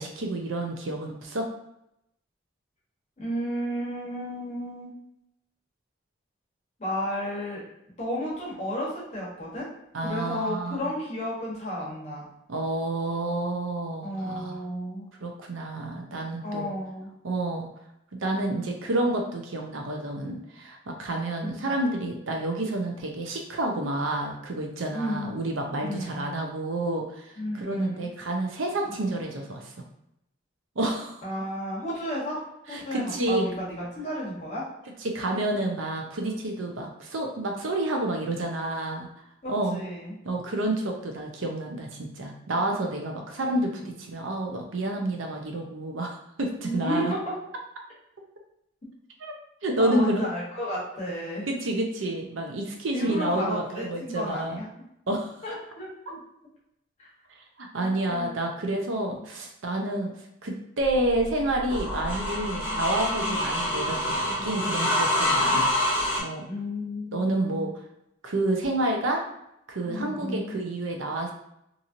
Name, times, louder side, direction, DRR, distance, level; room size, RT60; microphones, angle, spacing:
voice 1, 0.0-1.5 9.9-10.9 12.5-14.6 15.2-16.7 17.2-17.7 18.2-29.7 30.8-31.2 32.7-33.5 35.0-39.1 39.5-39.8 40.2-47.1 49.2-49.3 49.6-50.3 51.5-54.6 55.1-55.4 57.6-60.1 60.4-65.7 66.2-66.4 67.1-67.7 68.2-69.2 69.7-71.3, right 1 dB, 85° right, 2 dB, 0.6 m, -29 dB
voice 2, 3.2-4.9 6.8-7.6 8.0-9.7 10.0-12.3 14.0-15.1 16.4-17.1 21.4-21.7 24.9-25.4 25.8-26.3 27.4-28.1 28.9-29.0 31.2-32.4 32.7-34.6 39.4-40.1 43.7-43.9 46.6-47.2 49.8-51.5 52.9-54.6 55.4-55.9 57.0-57.1 57.8-58.4 59.9-60.0 62.6-62.8 63.2-63.4 66.5-67.7 69.9-70.6, equal, 35° left, -6 dB, 1.0 m, -32 dB
sound 1, 60.8-66.2, left 1 dB, 10° right, 0.6 m, -26 dB
2.9 x 2.6 x 2.5 m, 0.81 s
head